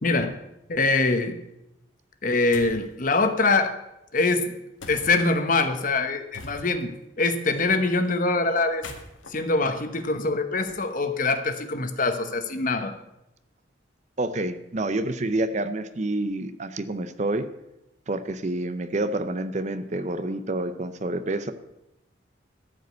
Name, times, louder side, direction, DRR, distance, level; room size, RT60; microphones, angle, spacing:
voice 1, 0.0-0.4 0.7-1.4 2.2-3.7 4.1-4.5 4.9-6.9 7.2-8.9 9.3-12.9, left 3 dB, 45° left, 8 dB, 1.0 m, -24 dB
sound 1, 2.5-2.9 4.8-5.3 6.3-7.0 8.6-10.6, left 2 dB, 85° left, 1.6 m, -43 dB
voice 2, 14.2-17.5 18.1-21.5, right 2 dB, 35° right, 11 dB, 0.6 m, -28 dB
13.5 x 5.1 x 8.1 m, 0.89 s
head